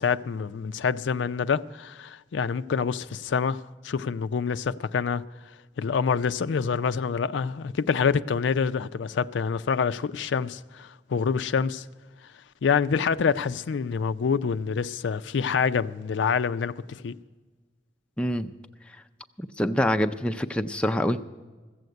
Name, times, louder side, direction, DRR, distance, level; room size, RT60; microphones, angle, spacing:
voice 1, 0.0-5.2 5.8-11.9 12.6-17.1, left 6 dB, 80° left, 0.4 m, -26 dB
voice 2, 18.2-18.5 19.4-21.2, equal, 5° left, 0.4 m, -26 dB
15.0 x 7.8 x 9.4 m
head